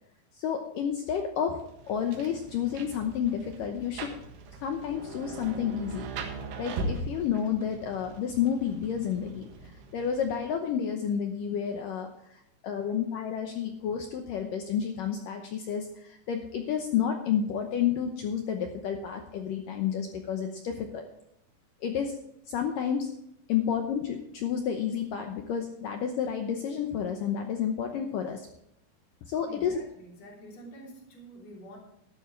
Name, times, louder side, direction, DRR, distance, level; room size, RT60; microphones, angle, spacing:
voice 1, 0.3-1.6 1.9-4.2 4.6-6.1 6.6-21.1 21.8-22.2 22.5-23.1 23.5-28.5 29.2-29.8, left 8 dB, 80° left, 4 dB, 1.9 m, -30 dB
Rain, 1.6-10.6, right 3 dB, 70° right, 3.5 m, -40 dB
voice 2, 29.5-31.8, equal, 40° left, -1 dB, 4.2 m, -47 dB
13.0 x 12.5 x 3.3 m, 0.81 s
omnidirectional pair, 5.2 m